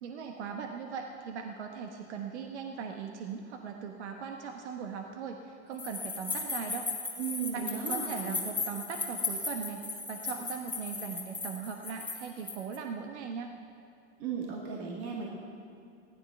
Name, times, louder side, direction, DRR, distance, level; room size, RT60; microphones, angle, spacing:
voice 1, 0.0-6.9 7.5-13.5, right 6 dB, 80° right, 4 dB, 1.2 m, -39 dB
sound 1, 5.8-12.8, left 4 dB, 5° left, 2.6 m, -36 dB
voice 2, 7.2-8.4 14.2-15.3, right 6 dB, 50° right, -2 dB, 2.2 m, -36 dB
15.5 x 11.5 x 5.9 m, 2.5 s
hypercardioid pair, 115°, 34 cm